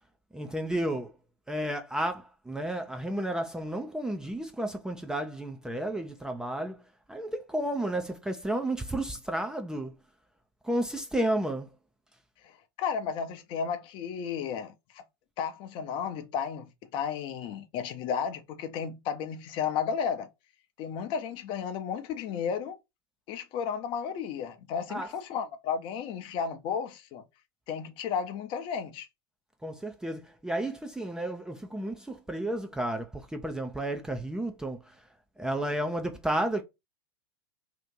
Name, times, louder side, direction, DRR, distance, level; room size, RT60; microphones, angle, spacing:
voice 1, 0.3-1.1 1.5-6.8 7.1-10.0 10.6-11.7 24.9-25.1 29.6-35.0 35.4-36.6, right 1 dB, 5° right, 0.5 m, -32 dB
voice 2, 12.4-15.0 15.4-20.3 20.8-22.8 23.3-27.2 27.7-29.1, left 7 dB, 40° left, 0.7 m, -33 dB
2.9 x 2.5 x 3.7 m
figure-of-eight pair, 85°, 13 cm